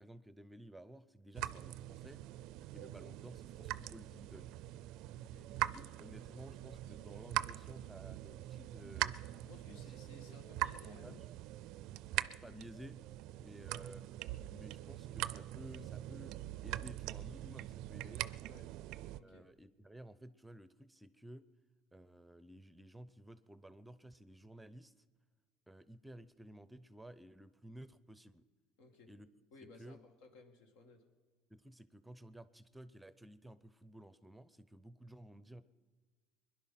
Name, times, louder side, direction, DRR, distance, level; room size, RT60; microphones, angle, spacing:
voice 1, 0.0-2.2 2.7-4.7 5.5-9.2 9.7-9.8 10.3-11.3 12.3-13.0 13.4-14.1 14.5-16.4 16.6-18.2 19.2-21.4 21.9-24.9 25.7-28.4 29.1-29.3 29.8-30.0 31.5-35.6, right 1 dB, 5° right, 14 dB, 0.6 m, -54 dB
sound 1, 1.3-19.2, right 15 dB, 70° right, 0.4 m, -43 dB
voice 2, 5.1-5.5 9.4-11.2 18.5-18.7 19.1-19.5 28.8-29.1 29.5-31.0, left 3 dB, 80° left, 4 dB, 2.2 m, -59 dB
21.5 x 11.0 x 5.8 m, 1.5 s
supercardioid pair, 95°, 0 cm